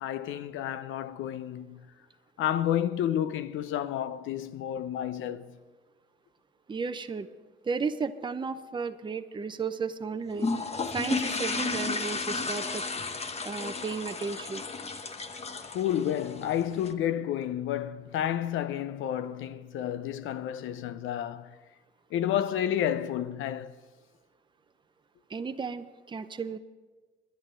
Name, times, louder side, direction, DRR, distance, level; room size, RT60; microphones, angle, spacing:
voice 1, 0.0-1.8 2.4-5.6 15.7-21.6 22.1-23.8, left 10 dB, 80° left, 0.6 m, -30 dB
voice 2, 6.7-7.3 7.6-10.5 10.9-12.8 13.4-14.6 25.3-26.6, right 5 dB, 25° right, 0.6 m, -34 dB
sound 1, 10.3-16.9, left 3 dB, 30° left, 0.9 m, -33 dB
11.0 x 10.5 x 6.3 m
cardioid pair, 90°, 20 cm